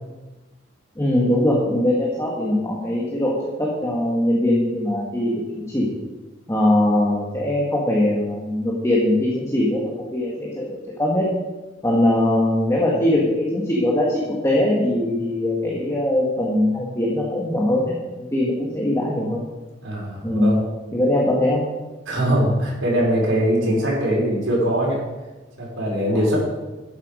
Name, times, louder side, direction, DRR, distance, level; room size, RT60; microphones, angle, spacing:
voice 1, 1.0-5.9 6.5-11.3 11.8-19.4 20.2-20.6 20.9-21.6 26.1-26.4, left 1 dB, 15° left, -5 dB, 1.8 m, -21 dB
voice 2, 19.8-20.6 22.1-25.0 25.6-26.4, equal, 80° right, -3 dB, 4.6 m, -21 dB
12.0 x 8.5 x 5.1 m, 1.1 s
head